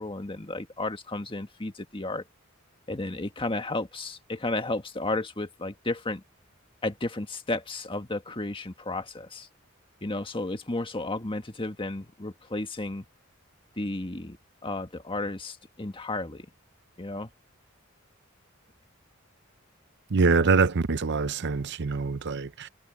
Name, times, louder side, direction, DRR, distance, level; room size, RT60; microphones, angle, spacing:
voice 1, 0.0-2.2 2.9-6.2 6.8-9.5 10.0-13.0 13.8-14.4 14.6-16.5 17.0-17.3, left 2 dB, 25° left, 1.7 m, -33 dB
voice 2, 20.1-22.7, right 4 dB, 55° right, 0.7 m, -24 dB
head